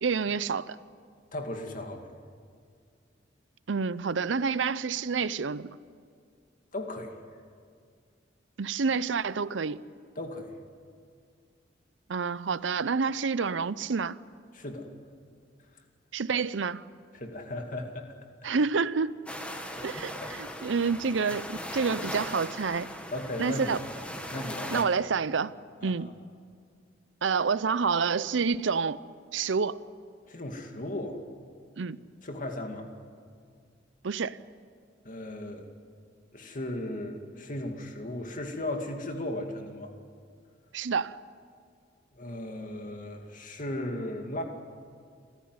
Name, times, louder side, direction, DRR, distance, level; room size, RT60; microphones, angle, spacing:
voice 1, 0.0-0.8 3.7-5.7 8.6-9.8 12.1-14.2 16.1-16.9 18.4-19.3 19.8-23.0 23.4-23.8 24.7-25.5 25.8-26.1 27.2-29.0 29.3-29.8 31.8-32.0 34.0-34.4 40.7-41.2, right 5 dB, 80° right, 0.6 m, -28 dB
voice 2, 1.3-2.0 6.7-7.1 10.2-10.6 14.5-14.9 17.1-18.2 19.8-19.9 20.1-20.3 23.1-23.8 24.3-24.9 25.8-26.0 30.3-31.2 32.2-32.9 35.0-35.7 36.3-39.9 42.1-44.4, left 1 dB, 45° left, 2.3 m, -36 dB
sound 1, 19.3-24.8, equal, 5° left, 1.8 m, -39 dB
29.0 x 14.0 x 9.6 m
head